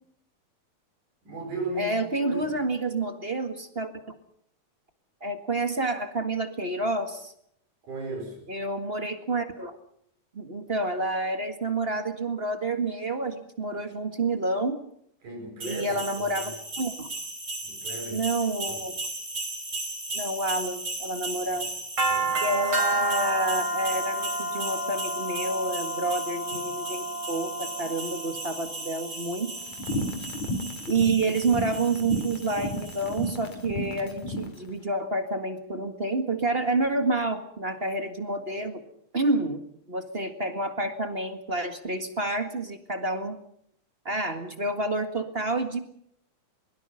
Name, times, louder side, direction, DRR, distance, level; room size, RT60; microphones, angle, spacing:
voice 1, 1.2-2.6 7.8-8.5 15.2-16.6 17.6-18.3 18.7-18.8 21.5-21.6 22.1-22.4, right 2 dB, 85° right, 1 dB, 6.8 m, -37 dB
voice 2, 1.8-4.1 5.2-7.3 8.5-9.7 10.3-14.8 15.6-17.1 18.1-18.9 20.1-21.7 22.4-29.5 30.9-38.8 39.1-39.6 39.9-43.4 44.0-45.8, right 2 dB, 25° right, 7 dB, 1.4 m, -29 dB
sound 1, 15.6-33.3, right 2 dB, 40° right, 5.4 m, -32 dB
sound 2, 29.7-34.5, left 1 dB, 65° left, 3.7 m, -33 dB
23.0 x 22.5 x 5.7 m, 0.69 s
omnidirectional pair, 3.5 m